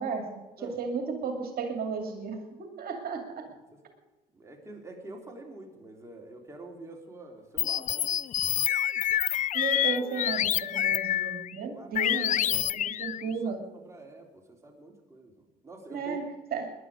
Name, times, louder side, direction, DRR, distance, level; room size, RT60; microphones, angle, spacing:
voice 1, 0.0-3.4 9.5-13.6 15.9-16.3 16.5-16.7, right 5 dB, 55° right, 4 dB, 2.5 m, -34 dB
voice 2, 3.5-3.8 4.3-8.2 11.7-12.3 13.3-16.3, right 2 dB, 15° right, 1 dB, 3.6 m, -47 dB
sound 1, 7.6-11.5 12.0-13.3, left 11 dB, 45° left, 0.4 m, -27 dB
18.5 x 11.0 x 5.0 m, 1.2 s
supercardioid pair, 80°, 18 cm